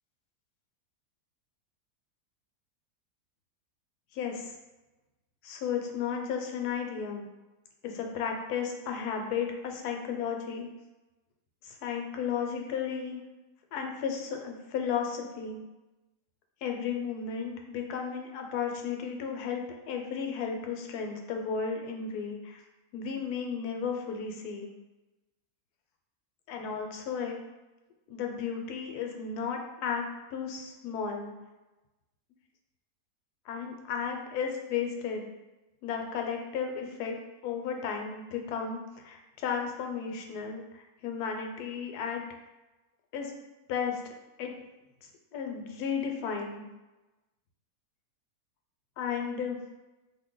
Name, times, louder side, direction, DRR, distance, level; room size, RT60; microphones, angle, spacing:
voice 1, 4.1-4.5 5.4-7.2 7.8-10.7 11.6-13.2 13.7-15.6 16.6-22.6 22.9-24.7 26.5-27.4 28.1-30.0 30.3-31.3 33.5-35.3 35.8-37.2 37.4-42.2 43.1-43.3 43.7-44.0 44.4-44.5 45.0-46.6 49.0-49.6, left 6 dB, 75° left, 3 dB, 1.1 m, -34 dB
2.7 x 2.6 x 3.7 m, 1.1 s
omnidirectional pair, 1.7 m